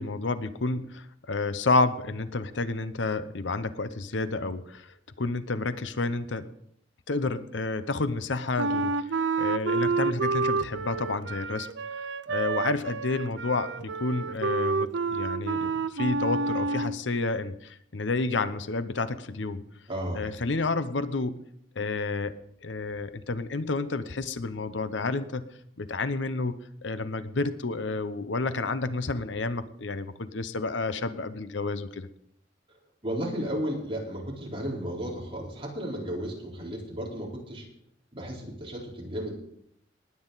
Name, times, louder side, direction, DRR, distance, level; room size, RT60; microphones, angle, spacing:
voice 1, 0.0-6.5 7.1-11.7 12.3-19.6 20.1-21.4 21.8-22.3 22.6-25.4 25.8-32.1, left 3 dB, 80° left, 12 dB, 0.8 m, -30 dB
Wind instrument woodwind instrument, 8.6-17.0, right 4 dB, 75° right, 0.6 m, -29 dB
voice 2, 19.9-20.3 32.7-32.8 33.0-37.7 38.1-39.3, equal, 30° right, -2 dB, 4.1 m, -34 dB
19.5 x 9.4 x 4.1 m, 0.71 s
head